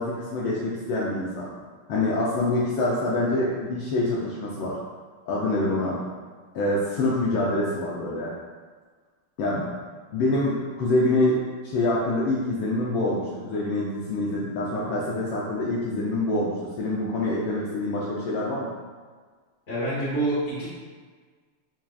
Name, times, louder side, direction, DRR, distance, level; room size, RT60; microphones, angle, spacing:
voice 1, 0.0-1.5 1.9-4.8 5.3-6.0 6.5-8.3 9.4-9.7 10.1-18.7, left 2 dB, 75° left, -6 dB, 1.4 m, -26 dB
voice 2, 19.7-20.7, right 1 dB, 35° left, -13 dB, 1.2 m, -26 dB
5.7 x 2.4 x 2.3 m, 1.5 s
omnidirectional pair, 2.4 m